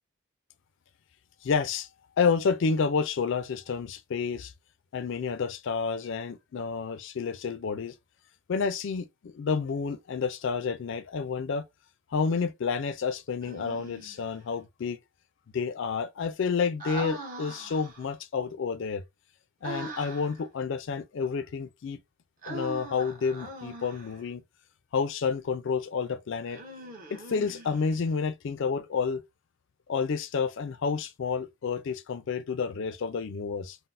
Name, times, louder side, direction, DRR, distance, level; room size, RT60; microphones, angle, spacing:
voice 1, 1.4-1.9 2.2-4.5 4.9-7.9 8.5-11.6 12.1-15.0 15.5-19.0 19.6-22.0 22.5-24.4 24.9-26.6 27.1-29.2 29.9-33.8, left 5 dB, 60° left, 0.4 m, -30 dB
Human voice, 13.4-14.3 16.8-18.1 19.6-20.4 22.4-24.2 26.5-28.1, right 2 dB, 40° right, 0.9 m, -41 dB
3.8 x 2.0 x 2.5 m
head